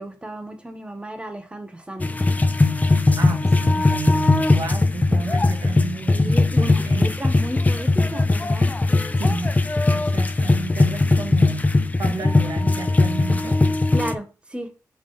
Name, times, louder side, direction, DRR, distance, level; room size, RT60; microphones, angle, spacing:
voice 1, 0.0-2.1 6.1-8.7 9.1-9.4 13.9-14.7, right 1 dB, 15° right, 1.3 m, -33 dB
sound 1, 2.0-14.1, left 2 dB, 25° left, 0.6 m, -19 dB
voice 2, 3.2-7.1 9.2-9.5 9.9-11.7 12.0-13.6, right 4 dB, 80° right, 1.2 m, -32 dB
5.8 x 3.5 x 5.0 m
wide cardioid pair, 95°, 6 cm